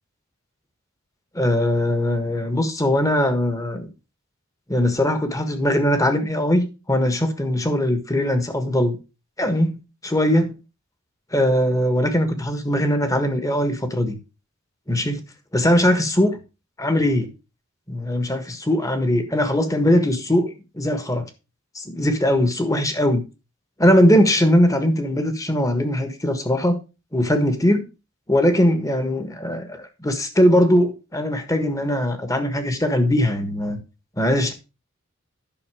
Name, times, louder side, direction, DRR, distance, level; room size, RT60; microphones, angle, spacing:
voice 1, 1.3-3.9 4.7-9.0 9.4-10.5 11.3-14.2 14.9-15.2 15.5-16.4 16.8-17.3 17.9-21.2 21.7-23.2 23.8-26.8 27.1-27.8 28.3-33.8 34.2-34.5, left 1 dB, 15° left, 1.5 m, -20 dB
11.0 x 6.3 x 4.8 m
head